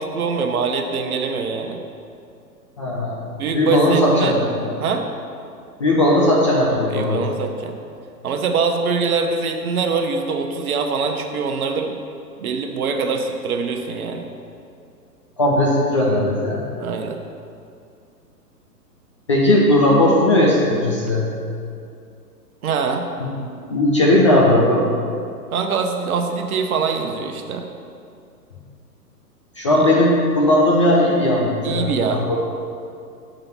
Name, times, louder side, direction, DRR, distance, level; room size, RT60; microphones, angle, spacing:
voice 1, 0.0-1.8 3.4-4.4 4.8-5.0 6.9-7.7 8.2-11.9 12.4-14.3 16.8-17.2 22.6-23.1 25.5-27.7 29.7-29.8 31.6-32.4, right 5 dB, 60° right, 4 dB, 0.9 m, -23 dB
voice 2, 2.8-3.2 3.5-4.4 5.8-7.2 15.4-16.7 19.3-21.3 23.2-23.3 23.7-24.9 29.6-32.4, left 1 dB, 20° left, -5 dB, 0.4 m, -17 dB
6.9 x 3.8 x 5.9 m, 2.4 s
figure-of-eight pair, 120°, 49 cm